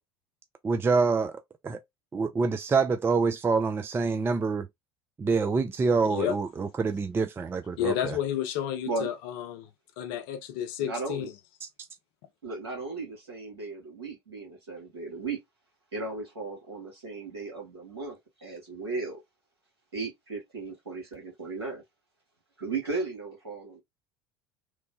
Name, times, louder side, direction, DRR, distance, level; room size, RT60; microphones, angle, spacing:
voice 1, 0.6-1.8 2.1-4.7 5.2-8.2 11.6-11.7, right 4 dB, 15° right, 0.3 m, -26 dB
voice 2, 7.8-9.7 10.0-11.3, left 10 dB, 60° left, 0.5 m, -31 dB
voice 3, 10.8-11.3 12.4-15.4 15.9-19.2 19.9-21.8 22.6-23.8, right 3 dB, 85° right, 1.4 m, -36 dB
3.1 x 2.1 x 2.6 m
hypercardioid pair, 70°, 13 cm